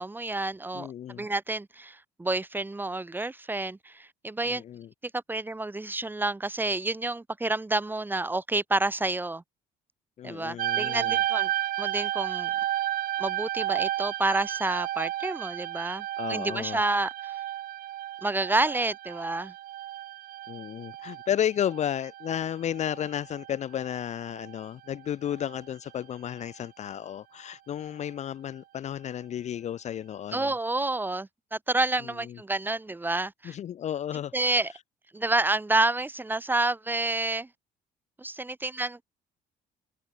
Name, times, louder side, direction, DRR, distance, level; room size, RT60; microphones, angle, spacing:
voice 1, 0.0-4.6 5.3-9.4 10.2-11.5 11.8-12.5 13.2-17.3 18.2-19.5 30.3-33.5 34.3-34.7 35.1-37.5 38.2-39.0, right 2 dB, 10° right, 0.8 m, -29 dB
voice 2, 0.7-1.3 4.5-4.9 10.2-11.2 16.2-16.8 20.5-30.5 32.0-32.4 33.4-34.5, left 10 dB, 45° left, 0.5 m, -33 dB
sound 1, 10.6-23.6 23.8-24.6 25.3-25.6, right 13 dB, 60° right, 0.6 m, -33 dB
cardioid pair, 110°, 17 cm